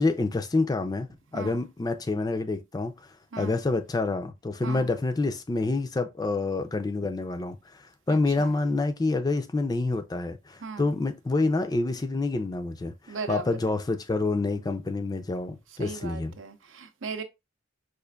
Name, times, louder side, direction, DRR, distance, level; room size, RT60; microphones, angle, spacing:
voice 1, 0.0-16.4, left 3 dB, 20° left, 0.3 m, -28 dB
voice 2, 8.1-8.5 10.6-10.9 13.1-13.6 15.8-17.2, right 4 dB, 85° right, 0.6 m, -37 dB
4.9 x 2.5 x 2.3 m
head